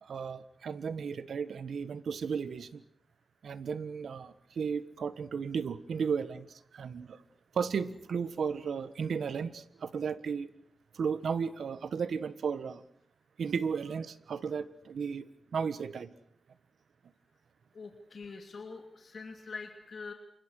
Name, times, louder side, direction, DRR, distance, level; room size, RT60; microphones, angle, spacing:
voice 1, 0.0-2.8 3.4-7.2 7.5-10.5 10.9-12.8 13.4-16.2, right 6 dB, 85° right, 14 dB, 1.4 m, -34 dB
voice 2, 17.7-20.1, left 4 dB, 60° left, 5 dB, 2.8 m, -44 dB
29.0 x 25.0 x 6.5 m, 0.66 s
wide cardioid pair, 100°, 0 cm